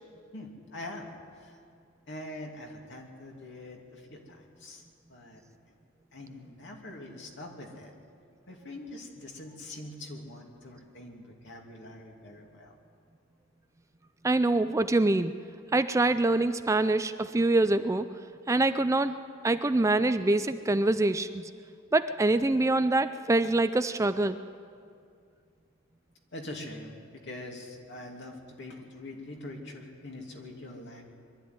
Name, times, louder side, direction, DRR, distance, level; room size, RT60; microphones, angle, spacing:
voice 1, 0.3-1.1 1.4-1.6 2.1-4.8 5.1-5.4 6.1-7.9 8.5-12.8 26.3-31.1, left 1 dB, 60° left, 1 dB, 2.8 m, -44 dB
voice 2, 14.2-15.3 15.7-18.1 18.5-19.2 19.4-21.5 21.9-24.4, right 2 dB, 15° right, 11 dB, 0.4 m, -25 dB
22.5 x 12.5 x 9.6 m, 2.3 s
head